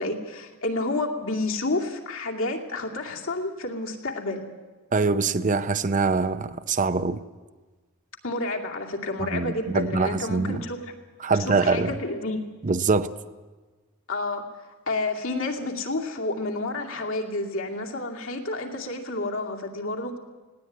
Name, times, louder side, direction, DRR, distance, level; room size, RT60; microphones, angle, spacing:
voice 1, 0.0-4.5 8.2-10.9 11.3-12.4 14.1-14.4 14.9-20.2, left 2 dB, 65° left, 1 dB, 2.5 m, -30 dB
voice 2, 4.9-7.2 9.2-10.6 11.2-11.9 12.6-13.1, right 4 dB, 35° right, 12 dB, 0.6 m, -24 dB
19.0 x 17.0 x 9.3 m, 1.3 s
head